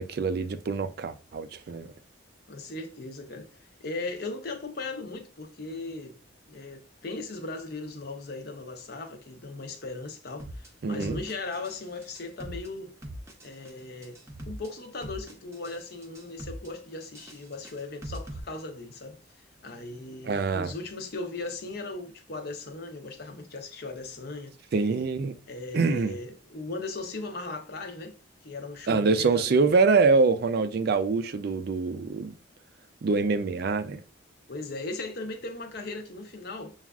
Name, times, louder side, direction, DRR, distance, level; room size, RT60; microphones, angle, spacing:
voice 1, 0.0-1.9 10.8-11.2 20.3-20.7 24.7-25.3 25.7-26.1 28.9-32.4 33.0-34.0, right 4 dB, 50° right, 0.3 m, -25 dB
voice 2, 2.5-6.2 6.5-12.9 13.4-14.2 14.5-19.2 19.6-24.5 25.5-28.1 28.4-29.7 34.5-36.7, left 2 dB, 50° left, 0.7 m, -38 dB
sound 1, 10.4-10.7 11.0-11.8 12.0-12.7 13.0-13.7 14.0-14.7 15.0-15.8 16.0-16.7 17.0-18.4, right 1 dB, 15° right, 0.6 m, -40 dB
7.0 x 2.4 x 2.3 m
head